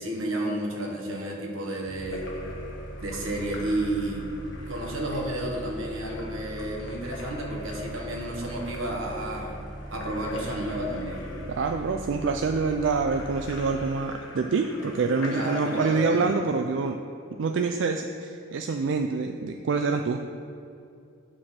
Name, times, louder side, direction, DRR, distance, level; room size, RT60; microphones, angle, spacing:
voice 1, 0.0-2.3 3.0-4.3 4.7-9.6 9.9-11.3 15.3-16.2, right 1 dB, 85° right, 0 dB, 1.5 m, -31 dB
Bus, 1.9-13.9, right 1 dB, 40° right, 0.7 m, -40 dB
Splash splatter / Drip / Trickle dribble, 2.0-16.3, left 2 dB, 75° left, 1.2 m, -44 dB
voice 2, 11.5-17.0 17.4-20.2, right 4 dB, 65° right, 5 dB, 0.4 m, -26 dB
9.3 x 6.4 x 4.4 m, 2.6 s
head